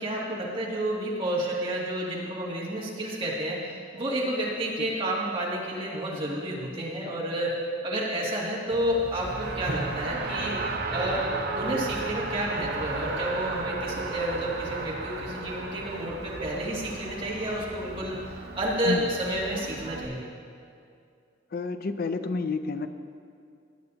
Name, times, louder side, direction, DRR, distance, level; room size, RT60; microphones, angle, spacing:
voice 1, 0.0-3.6 3.9-7.6 7.8-10.6 10.9-11.2 11.6-18.2 18.5-20.3, right 1 dB, 30° right, -6 dB, 2.2 m, -30 dB
Race car auto racing, 8.7-20.0, right 3 dB, 60° right, 0.9 m, -34 dB
voice 2, 21.5-22.9, left 3 dB, 55° left, 9 dB, 0.5 m, -29 dB
17.5 x 9.1 x 2.8 m, 2.4 s
head